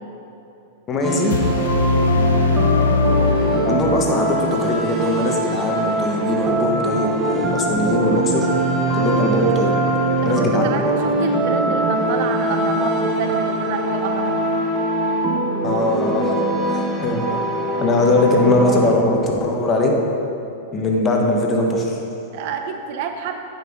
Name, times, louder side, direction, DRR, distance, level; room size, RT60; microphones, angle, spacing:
voice 1, 0.9-1.4 3.7-8.5 8.9-9.7 10.2-10.9 15.6-16.3 16.6-17.4 17.8-19.9 20.7-22.0, left 2 dB, 30° left, 0 dB, 1.2 m, -20 dB
sound 1, 1.0-18.9, right 2 dB, 25° right, 1.1 m, -22 dB
sound 2, 1.3-4.3, left 5 dB, 75° left, 0.4 m, -20 dB
voice 2, 10.2-14.4 22.3-23.4, right 6 dB, 55° right, 5 dB, 0.6 m, -28 dB
9.0 x 5.7 x 3.7 m, 2.8 s
hypercardioid pair, 105°, 0 cm